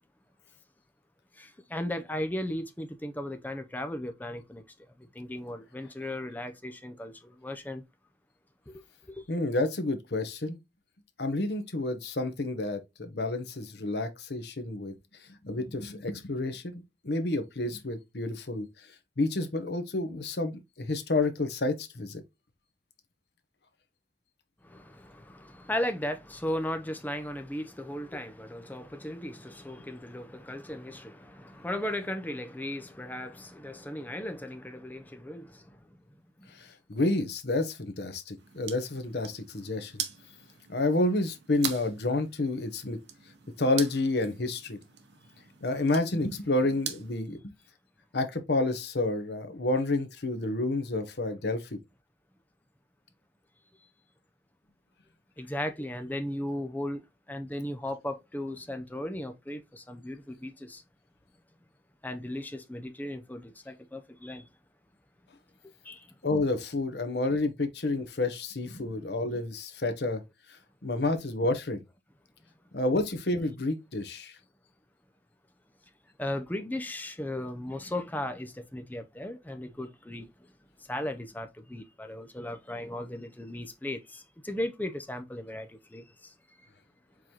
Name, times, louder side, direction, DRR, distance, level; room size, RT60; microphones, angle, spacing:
voice 1, 1.4-4.6 5.1-7.8 8.7-8.8 9.1-9.2 24.6-35.8 36.4-36.5 55.4-57.0 57.3-60.8 62.0-64.5 65.8-66.1 76.2-80.3 80.9-86.3, left 1 dB, 10° left, 0.5 m, -36 dB
voice 2, 9.3-10.6 11.2-14.9 15.4-18.7 19.2-22.2 36.6-40.0 40.7-43.0 43.6-44.8 45.6-47.4 48.1-51.6 66.2-70.2 70.8-71.8 72.7-74.3, left 2 dB, 70° left, 0.9 m, -29 dB
sound 1, 38.4-47.2, right 9 dB, 80° right, 0.9 m, -42 dB
4.8 x 3.9 x 2.8 m
head